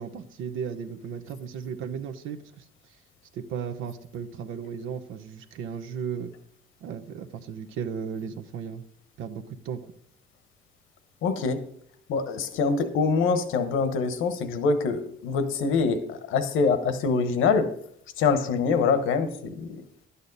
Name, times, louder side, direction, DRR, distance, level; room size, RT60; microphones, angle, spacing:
voice 1, 0.0-2.6 3.3-6.3 6.8-8.8 9.2-9.8, right 7 dB, 90° right, 9 dB, 0.9 m, -35 dB
voice 2, 11.2-11.6 12.1-17.7 18.2-19.8, left 5 dB, 90° left, 10 dB, 1.1 m, -24 dB
11.5 x 8.3 x 4.0 m, 0.68 s
cardioid pair, 90°, 20 cm